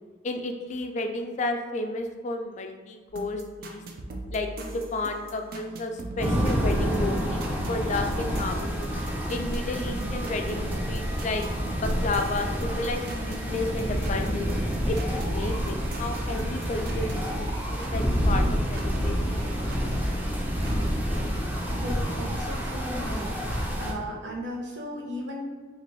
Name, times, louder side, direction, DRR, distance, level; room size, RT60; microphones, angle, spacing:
voice 1, 0.2-3.8 4.3-8.8 9.3-11.4 11.8-14.5 14.9-20.0, left 2 dB, 40° left, 5 dB, 0.3 m, -32 dB
sound 1, 3.1-18.9 19.2-20.8, right 2 dB, 55° right, 0.4 m, -39 dB
sound 2, 6.2-23.9, equal, 10° right, 0.6 m, -28 dB
voice 2, 21.7-25.5, equal, 80° right, -1 dB, 0.8 m, -36 dB
3.1 x 2.5 x 3.9 m, 1.4 s
head